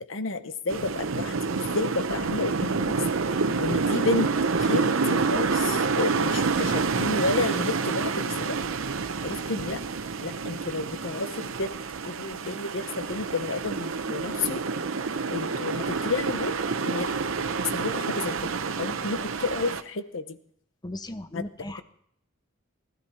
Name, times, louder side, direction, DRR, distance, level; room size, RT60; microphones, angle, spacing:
voice 1, 0.0-3.0 3.6-8.6 9.2-9.8 10.2-11.7 12.0-14.6 15.3-16.5 16.8-17.2 17.7-18.5 18.8-20.4 21.3-21.8, left 3 dB, 70° left, 11 dB, 0.8 m, -31 dB
sound 1, 0.7-19.8, right 4 dB, 80° right, 0.8 m, -28 dB
voice 2, 20.8-21.8, left 1 dB, 20° left, 11 dB, 0.7 m, -37 dB
16.5 x 13.0 x 4.3 m, 0.70 s
head